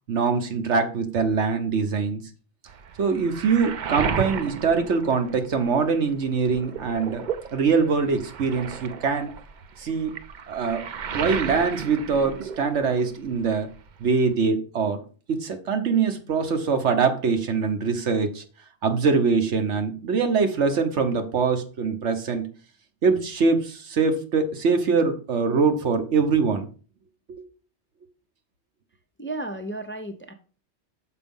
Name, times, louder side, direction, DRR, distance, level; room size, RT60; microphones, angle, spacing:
voice 1, 0.1-2.2 3.0-7.2 7.5-9.3 9.8-10.1 10.5-10.9 11.1-13.7 14.0-15.0 15.3-18.4 18.8-22.5 23.0-26.7, right 5 dB, 80° right, 7 dB, 1.3 m, -23 dB
Waves surf, 2.7-5.9 6.2-13.2 13.4-14.4, right 7 dB, 50° right, 0.6 m, -34 dB
voice 2, 29.2-30.3, right 2 dB, 15° left, 6 dB, 0.6 m, -33 dB
6.6 x 5.0 x 5.4 m, 0.40 s
omnidirectional pair, 1.2 m